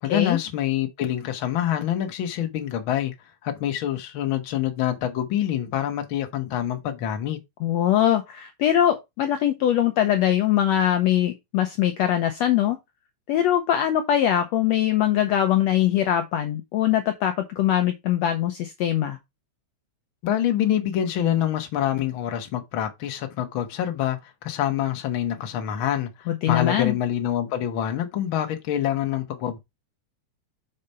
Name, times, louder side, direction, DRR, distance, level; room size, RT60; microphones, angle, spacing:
voice 1, 0.0-3.1 3.4-7.4 20.2-29.6, left 11 dB, 55° left, 1.6 m, -26 dB
voice 2, 7.6-12.8 13.3-19.2 26.3-27.0, left 11 dB, 75° left, 1.7 m, -22 dB
6.7 x 5.0 x 4.2 m
omnidirectional pair, 3.6 m